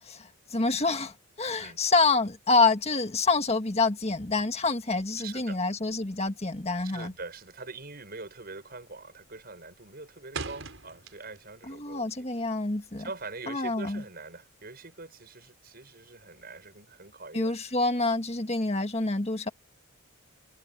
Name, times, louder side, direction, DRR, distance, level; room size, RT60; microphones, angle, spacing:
voice 1, 0.1-7.1 11.7-13.1 13.5-14.0 17.3-19.5, left 3 dB, 30° left, 1.7 m, -27 dB
voice 2, 5.2-5.8 6.8-12.3 13.0-17.5, right 3 dB, 45° right, 6.4 m, -43 dB
sound 1, 7.1-7.5 7.8-8.2 8.5-8.9 9.3-11.6 11.9-13.4, right 4 dB, 60° right, 6.9 m, -41 dB
head